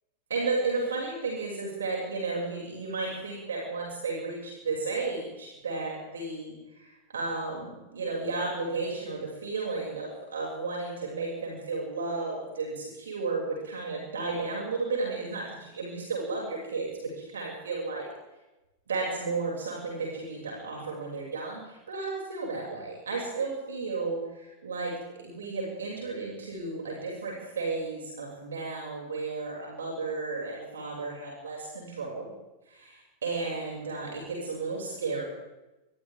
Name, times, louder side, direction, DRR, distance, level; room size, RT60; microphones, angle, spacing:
voice 1, 0.3-18.0 18.9-32.3 32.7-35.2, right 3 dB, 65° right, -2 dB, 6.8 m, -33 dB
29.0 x 25.0 x 3.7 m, 1.0 s
figure-of-eight pair, 90°, 0 cm